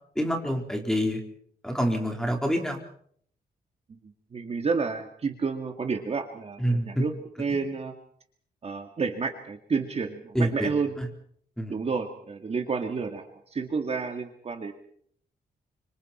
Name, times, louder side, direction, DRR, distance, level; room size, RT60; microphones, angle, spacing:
voice 1, 0.2-1.2 1.6-2.8 6.6-7.0 10.3-10.7 11.6-11.7, equal, 5° left, 2 dB, 4.2 m, -26 dB
voice 2, 4.3-7.9 8.6-11.0 11.7-14.7, right 4 dB, 40° right, 5 dB, 2.1 m, -30 dB
29.0 x 25.5 x 4.4 m, 0.63 s
wide cardioid pair, 145°, 16 cm